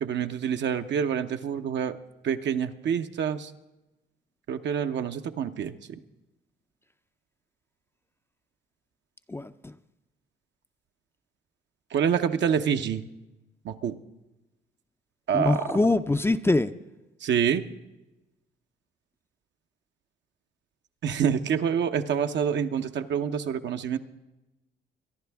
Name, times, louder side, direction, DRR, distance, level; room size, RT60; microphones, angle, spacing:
voice 1, 0.0-1.9 2.2-3.5 4.5-5.7 11.9-13.0 13.6-13.9 15.3-15.6 17.2-17.6 21.0-24.0, right 8 dB, 65° right, 0.8 m, -27 dB
voice 2, 9.3-9.7 15.3-16.7, left 2 dB, 10° left, 0.5 m, -24 dB
24.0 x 11.0 x 3.5 m
cardioid pair, 90°, 20 cm